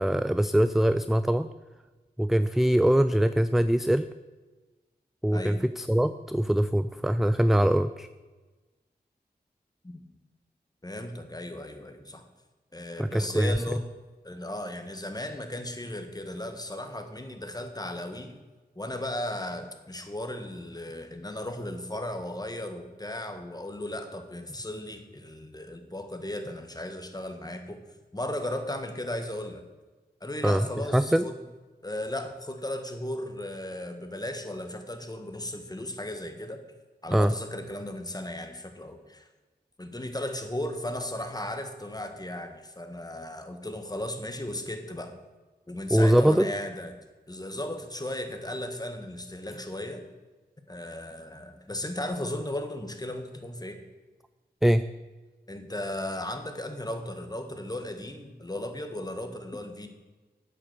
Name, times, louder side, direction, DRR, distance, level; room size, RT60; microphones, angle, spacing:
voice 1, 0.0-1.5 2.2-4.1 5.2-8.1 13.0-13.5 30.4-30.7 30.9-31.2 37.1-37.3 45.9-46.5 54.6-54.8, right 1 dB, ahead, 12 dB, 0.4 m, -23 dB
voice 2, 5.3-5.6 9.8-10.1 10.8-12.2 12.7-13.8 14.2-18.3 18.7-27.8 28.1-29.6 30.2-31.3 31.8-36.6 37.0-39.3 39.8-45.1 45.7-47.0 47.3-50.0 50.7-53.8 55.5-59.9, left 1 dB, 20° left, 6 dB, 1.5 m, -36 dB
8.4 x 8.1 x 6.7 m, 1.2 s
cardioid pair, 45°, 18 cm